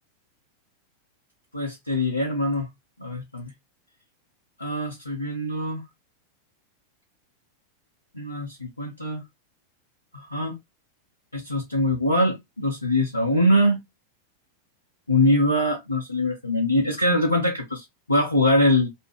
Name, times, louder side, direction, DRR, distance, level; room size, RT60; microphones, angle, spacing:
voice 1, 1.5-2.7 3.0-3.5 4.6-5.8 8.1-9.2 10.1-10.5 11.3-13.8 15.1-18.9, left 1 dB, 85° left, 0.5 m, -23 dB
2.4 x 2.0 x 3.2 m
figure-of-eight pair, 90°, 0 cm